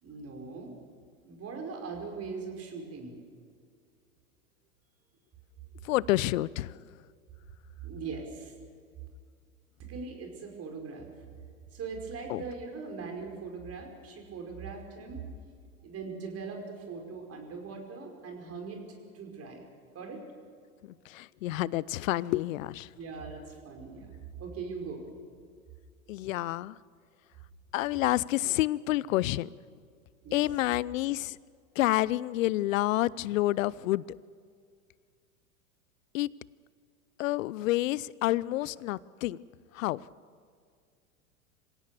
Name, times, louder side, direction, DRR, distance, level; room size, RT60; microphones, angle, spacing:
voice 1, 0.0-0.7 1.2-3.2 7.8-8.5 9.9-11.1 11.7-15.2 15.8-18.8 19.1-19.6 19.9-20.2 23.0-25.1 30.2-30.4, right 4 dB, 35° right, 2 dB, 5.5 m, -40 dB
voice 2, 5.8-6.9 12.3-12.4 20.8-22.9 26.1-26.8 27.7-29.5 30.3-31.4 31.8-34.0 36.1-36.3 37.2-39.4 39.7-40.0, left 16 dB, 65° left, 23 dB, 0.7 m, -29 dB
26.5 x 17.0 x 7.0 m, 2.1 s
hypercardioid pair, 95°, 44 cm